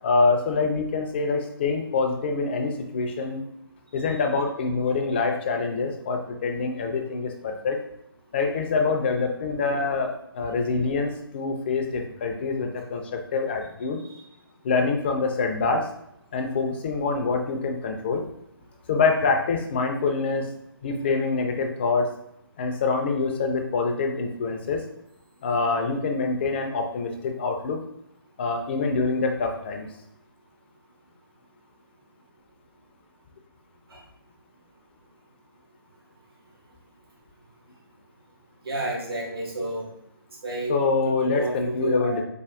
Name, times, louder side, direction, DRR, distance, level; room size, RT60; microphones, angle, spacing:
voice 1, 0.0-3.4 3.9-7.8 8.3-14.0 14.6-15.9 16.3-18.2 18.9-20.5 20.8-22.1 22.6-24.8 25.4-27.8 28.4-29.9 40.7-42.2, left 4 dB, 25° left, 3 dB, 0.3 m, -25 dB
voice 2, 38.6-39.9 40.4-42.2, right 2 dB, 70° right, -3 dB, 1.1 m, -30 dB
4.2 x 2.1 x 2.3 m, 0.78 s
figure-of-eight pair, 140°, 13 cm